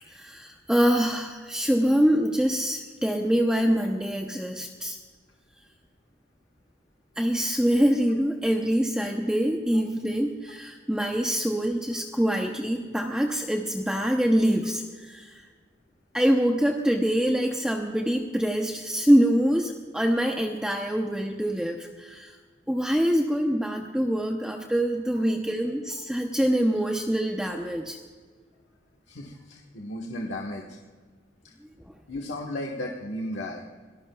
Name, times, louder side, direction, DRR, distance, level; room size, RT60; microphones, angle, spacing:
voice 1, 0.0-5.0 7.2-15.5 16.1-22.4 22.7-28.0, equal, 5° right, 1 dB, 0.8 m, -25 dB
voice 2, 29.1-30.8 32.1-33.6, left 1 dB, 75° left, -1 dB, 1.4 m, -34 dB
26.0 x 18.5 x 2.3 m, 1.5 s
head